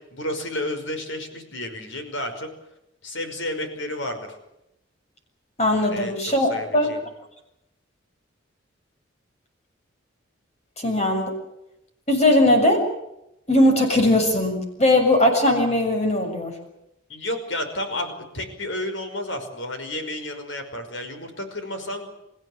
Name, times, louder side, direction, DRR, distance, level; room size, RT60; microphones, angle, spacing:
voice 1, 0.1-2.5 3.0-4.3 5.8-6.1 6.4-7.0 17.1-22.1, left 1 dB, 70° left, 7 dB, 5.5 m, -31 dB
voice 2, 5.6-6.9 10.8-11.3 12.1-12.8 13.5-16.5, left 1 dB, 35° left, 3 dB, 7.1 m, -19 dB
29.0 x 16.0 x 8.8 m, 0.86 s
head